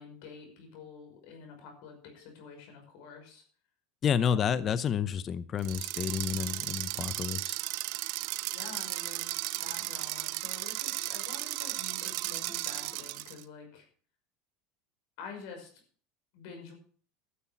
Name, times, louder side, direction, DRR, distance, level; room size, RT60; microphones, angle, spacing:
voice 1, 0.0-3.4 4.2-4.6 8.5-9.3 9.6-13.9 15.2-15.7 16.3-16.7, left 5 dB, 65° left, 5.7 m, -48 dB
voice 2, 4.0-7.6, left 8 dB, 35° left, 0.7 m, -30 dB
sound 1, 5.6-13.4, right 19 dB, 65° right, 0.6 m, -35 dB
13.0 x 7.2 x 6.0 m
supercardioid pair, 115°, 0 cm